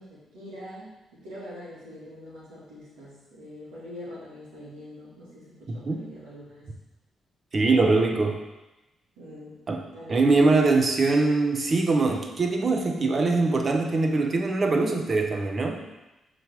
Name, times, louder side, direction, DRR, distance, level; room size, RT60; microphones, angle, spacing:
voice 1, 0.0-6.7 9.2-9.6 9.9-10.6, left 1 dB, 85° right, -7 dB, 2.5 m, -44 dB
voice 2, 5.7-6.0 7.5-8.4 9.7-9.8 10.1-15.8, right 3 dB, 45° right, 3 dB, 1.1 m, -22 dB
6.4 x 4.2 x 4.8 m, 1.0 s
supercardioid pair, 55°, 0 cm